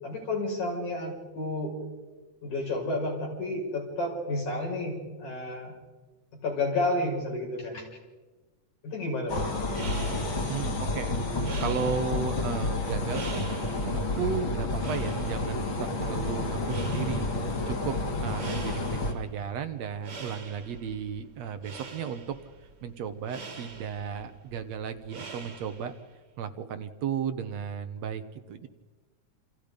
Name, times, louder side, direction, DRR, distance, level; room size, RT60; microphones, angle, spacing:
voice 1, 0.0-1.7 2.4-5.7 6.4-7.9 8.8-10.2, left 2 dB, 75° left, -1 dB, 7.6 m, -31 dB
sound 1, 9.3-19.1, left 2 dB, 45° left, 2.9 m, -30 dB
sound 2, 9.7-26.1, right 4 dB, 35° right, 2.4 m, -45 dB
voice 2, 10.4-22.4 22.8-25.9 26.4-28.7, right 7 dB, 65° right, 9 dB, 2.2 m, -35 dB
28.5 x 27.5 x 5.2 m, 1.2 s
omnidirectional pair, 3.4 m